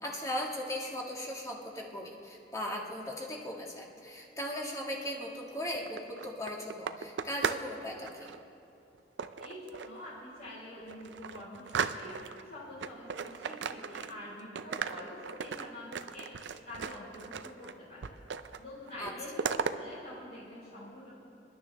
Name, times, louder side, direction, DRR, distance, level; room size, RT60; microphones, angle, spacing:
voice 1, 0.0-8.3 19.0-19.1, equal, 20° left, -2 dB, 1.9 m, -38 dB
sound 1, 5.7-7.7 8.0-8.4 9.2-10.0 10.5-10.6 10.9-12.4 12.8-14.3 14.6-17.7 18.0-18.6 18.9-19.7, right 6 dB, 85° right, 0.5 m, -36 dB
voice 2, 9.4-12.1 12.4-16.3 16.6-18.1 18.6-21.1, left 1 dB, 55° left, -11 dB, 4.3 m, -46 dB
27.5 x 11.5 x 3.4 m, 2.7 s
head